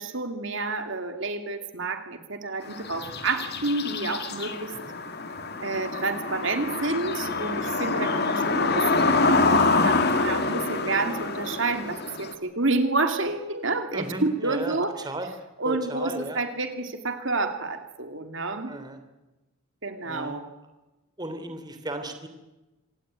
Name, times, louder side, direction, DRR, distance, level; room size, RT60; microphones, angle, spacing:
voice 1, 0.0-4.7 5.6-15.0 15.6-18.7 19.8-20.4, right 3 dB, 60° right, 7 dB, 2.4 m, -29 dB
sound 1, 2.7-12.3, left 3 dB, 50° left, 2.2 m, -26 dB
voice 2, 13.9-14.8 15.0-15.3 15.6-16.4 18.7-19.0 20.0-20.3 21.2-22.3, right 1 dB, 20° right, 8 dB, 2.9 m, -34 dB
26.5 x 18.0 x 9.6 m, 1.1 s
head